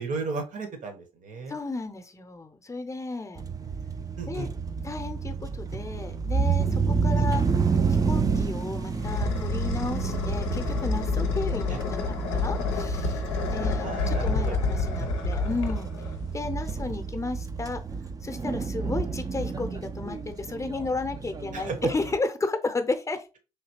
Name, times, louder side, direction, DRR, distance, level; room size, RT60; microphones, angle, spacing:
voice 1, 0.0-1.5 4.2-4.5 7.1-7.4 11.7-11.8 13.8-14.6 15.0-15.1 21.5-21.9, right 4 dB, 60° right, 6 dB, 0.9 m, -34 dB
voice 2, 1.5-3.4 4.3-4.5 4.8-7.4 8.1-13.2 13.5-15.9 16.3-17.8 18.2-23.2, left 3 dB, 20° left, 8 dB, 0.6 m, -33 dB
sound 1, 3.4-22.2, right 5 dB, 25° right, 0.4 m, -30 dB
sound 2, 8.5-16.4, left 4 dB, 90° left, 0.5 m, -29 dB
3.2 x 2.7 x 2.9 m, 0.30 s
hypercardioid pair, 55°, 15 cm